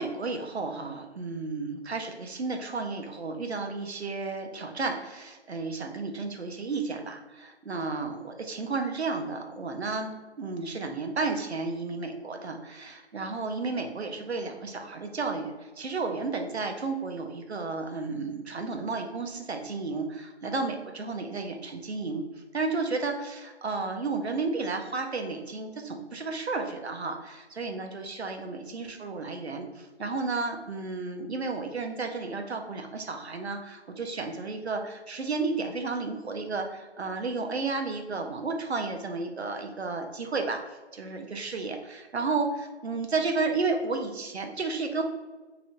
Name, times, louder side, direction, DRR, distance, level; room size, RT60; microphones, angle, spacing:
voice 1, 0.0-10.1 10.4-22.2 22.5-45.0, right 3 dB, 70° right, 5 dB, 0.6 m, -32 dB
2.9 x 2.4 x 2.9 m, 1.2 s
figure-of-eight pair, 170°, 34 cm